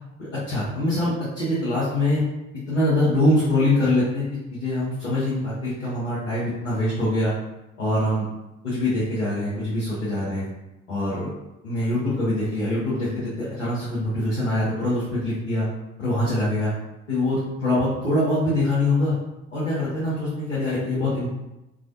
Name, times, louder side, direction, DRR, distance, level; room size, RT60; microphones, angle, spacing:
voice 1, 0.5-2.2 2.7-7.3 7.8-8.3 8.6-10.4 10.9-11.3 11.6-15.7 16.0-16.7 17.1-19.1 19.5-21.3, left 1 dB, 85° left, -11 dB, 0.7 m, -24 dB
2.4 x 2.0 x 2.5 m, 0.95 s
figure-of-eight pair, 45°, 36 cm